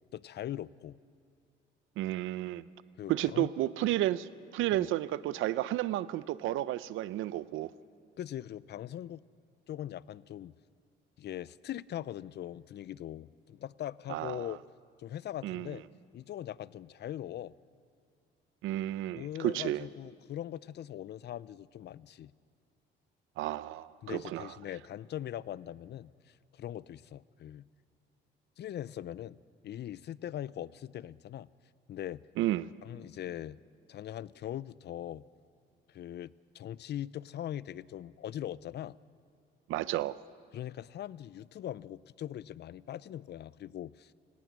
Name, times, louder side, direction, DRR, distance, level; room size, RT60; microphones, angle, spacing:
voice 1, 0.1-1.0 3.0-3.5 4.7-4.9 8.2-9.2 9.7-10.5 11.2-14.6 15.0-15.8 16.1-17.5 19.1-22.3 24.0-27.6 28.6-29.4 29.6-31.5 31.9-32.2 32.8-33.6 33.9-35.2 35.9-39.0 40.5-44.1, left 11 dB, 60° left, 0.5 m, -41 dB
voice 2, 2.0-2.7 3.1-7.7 14.1-14.5 15.4-15.8 18.6-19.9 23.4-24.6 32.4-32.7 39.7-40.2, right 14 dB, 90° right, 0.6 m, -32 dB
29.0 x 18.0 x 6.2 m
cardioid pair, 90°, 20 cm